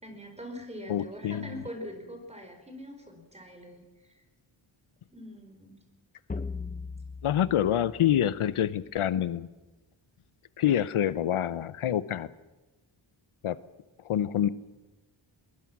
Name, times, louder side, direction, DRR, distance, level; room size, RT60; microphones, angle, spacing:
voice 1, 0.0-4.2 5.1-5.7, equal, 15° right, 4 dB, 4.7 m, -43 dB
voice 2, 0.9-1.5 7.2-9.5 10.6-12.3 13.4-13.6 14.0-14.5, left 10 dB, 85° left, 16 dB, 0.9 m, -26 dB
sound 1, 6.3-8.9, left 4 dB, 20° left, 0.6 m, -40 dB
22.5 x 21.5 x 6.1 m, 1.1 s
wide cardioid pair, 160°, 49 cm